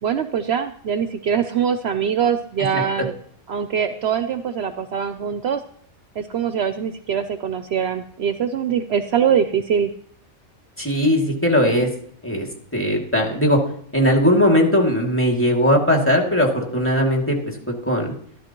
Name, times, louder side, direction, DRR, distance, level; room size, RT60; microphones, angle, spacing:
voice 1, 0.0-3.1 3.5-5.6 6.2-9.9, right 8 dB, 60° right, 9 dB, 0.9 m, -23 dB
voice 2, 10.8-11.9 12.2-12.5 12.7-13.6 13.9-18.1, equal, 10° left, -1 dB, 2.4 m, -19 dB
13.5 x 13.0 x 3.0 m, 0.62 s
omnidirectional pair, 1.3 m